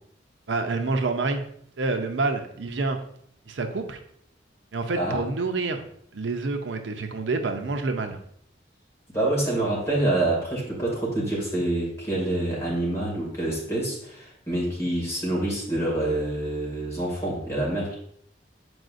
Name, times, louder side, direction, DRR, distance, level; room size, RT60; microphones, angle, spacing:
voice 1, 0.5-1.4 1.8-3.0 3.5-4.0 4.7-5.8 6.1-8.2, right 3 dB, 85° right, 6 dB, 0.6 m, -27 dB
voice 2, 9.1-18.0, right 1 dB, 15° left, -4 dB, 2.3 m, -26 dB
7.8 x 4.8 x 2.5 m, 0.67 s
head